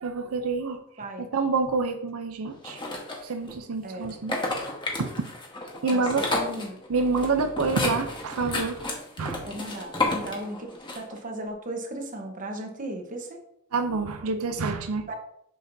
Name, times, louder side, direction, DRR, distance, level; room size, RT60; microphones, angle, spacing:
voice 1, 0.0-0.8 1.3-2.8 3.2-4.4 4.9-5.3 5.8-6.2 6.9-8.9 9.2-9.4 13.7-15.2, right 4 dB, 90° right, 7 dB, 0.6 m, -27 dB
voice 2, 1.0-1.3 3.8-4.2 5.9-6.1 6.3-6.8 9.5-10.7 10.9-13.4 15.1-15.2, right 1 dB, 40° right, 4 dB, 1.0 m, -36 dB
sound 1, 2.6-3.5 4.1-11.2, left 2 dB, 20° left, 1.2 m, -31 dB
6.6 x 6.4 x 2.7 m, 0.74 s
head